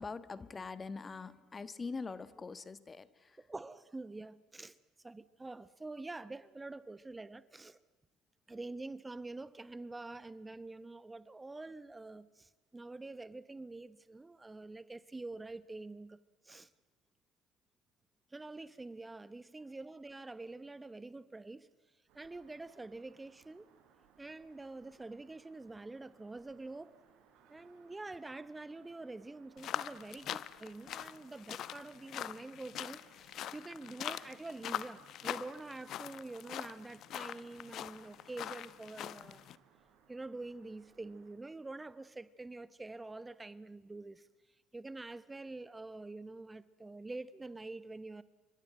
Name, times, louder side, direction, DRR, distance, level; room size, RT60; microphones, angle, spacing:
voice 1, 0.0-3.5, left 4 dB, 30° left, 1.5 m, -43 dB
voice 2, 3.4-7.8 8.5-16.2 16.4-16.7 18.3-21.7 22.1-23.7 24.2-27.0 27.5-39.4 40.1-44.3 44.7-48.2, right 2 dB, 15° right, 1.1 m, -46 dB
sound 1, 22.1-41.4, right 7 dB, 65° right, 4.5 m, -67 dB
Footsteps on gravel, 29.6-39.6, left 11 dB, 55° left, 1.0 m, -43 dB
28.5 x 25.0 x 7.7 m
hypercardioid pair, 65°, 0 cm